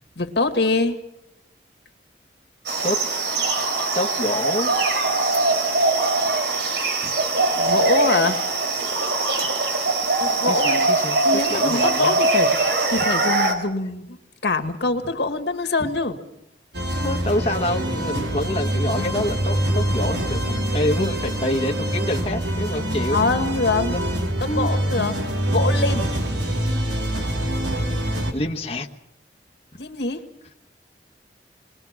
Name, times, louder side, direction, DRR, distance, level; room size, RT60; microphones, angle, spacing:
voice 1, 0.2-1.0 7.5-8.4 10.2-10.9 11.2-12.5 12.9-14.2 14.4-16.2 23.1-24.0 24.4-25.2 25.5-26.1 29.8-30.2, left 3 dB, 75° left, 7 dB, 2.1 m, -24 dB
sound 1, 2.7-13.5, right 2 dB, 70° right, 4.3 m, -22 dB
voice 2, 3.9-4.7 7.0-7.1 10.4-12.2 12.9-13.0 17.0-23.2 23.9-24.0 24.5-24.7 28.3-28.9, left 1 dB, 35° left, 1 dB, 1.4 m, -27 dB
sound 2, 16.7-28.3, equal, 85° right, 4.3 m, -24 dB
28.5 x 21.5 x 6.0 m, 0.85 s
head